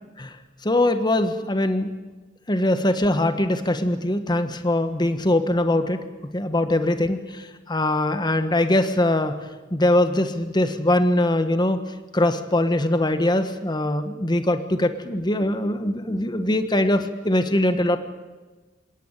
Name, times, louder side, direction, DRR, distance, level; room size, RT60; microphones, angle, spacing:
voice 1, 0.6-1.9 2.5-6.0 6.3-9.4 9.7-11.8 12.1-18.0, left 1 dB, 20° left, 9 dB, 1.4 m, -22 dB
27.5 x 17.5 x 9.0 m, 1.3 s
head